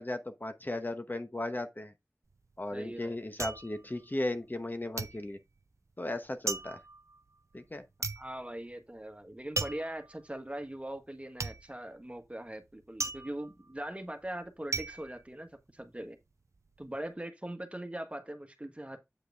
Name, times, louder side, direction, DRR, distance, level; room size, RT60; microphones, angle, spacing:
voice 1, 0.0-1.9 2.6-5.4 6.0-6.8 7.5-7.8, left 1 dB, 40° left, 1.0 m, -36 dB
sound 1, 2.3-4.7 5.0-16.1 16.4-17.0, right 3 dB, 75° right, 0.7 m, -39 dB
voice 2, 2.7-3.2 8.2-16.2 16.8-19.0, right 1 dB, 25° right, 1.4 m, -41 dB
8.2 x 4.8 x 3.4 m
wide cardioid pair, 50°, 5 cm